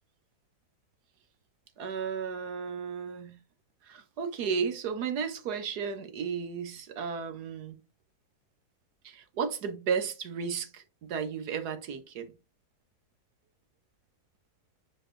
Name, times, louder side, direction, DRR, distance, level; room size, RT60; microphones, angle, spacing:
voice 1, 1.8-3.4 3.8-7.8 9.0-12.3, right 6 dB, 80° right, 1.4 m, -34 dB
5.0 x 4.7 x 4.4 m
omnidirectional pair, 1.7 m